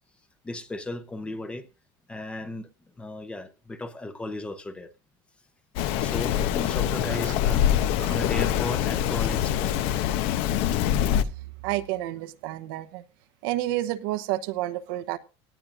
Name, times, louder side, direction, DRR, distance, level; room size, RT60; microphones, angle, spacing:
voice 1, 0.4-1.7 2.1-2.7 3.0-4.9 6.0-7.7 8.1-9.8, left 2 dB, 10° left, 0.8 m, -35 dB
Rain, 5.8-11.2, left 10 dB, 55° left, 0.8 m, -24 dB
voice 2, 11.6-13.0 13.4-15.2, right 15 dB, 75° right, 0.9 m, -30 dB
18.0 x 10.5 x 2.6 m
cardioid pair, 170°, 12 cm